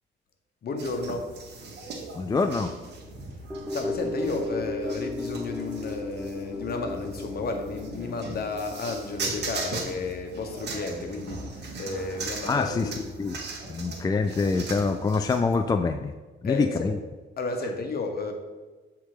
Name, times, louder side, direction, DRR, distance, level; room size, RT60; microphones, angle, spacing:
voice 1, 0.6-1.3 3.7-11.4 11.8-13.0 16.4-16.9 17.4-18.3, left 3 dB, 50° left, 4 dB, 1.2 m, -32 dB
sound 1, 0.8-15.6, right 3 dB, 60° right, 1.3 m, -39 dB
voice 2, 2.1-2.7 12.5-13.4 13.7-16.1 16.4-17.0, left 4 dB, 20° left, 7 dB, 0.3 m, -25 dB
sound 2, 3.5-11.9 12.3-12.4, left 2 dB, 5° right, 0.7 m, -36 dB
7.4 x 3.5 x 4.9 m, 1.3 s
cardioid pair, 90°, 20 cm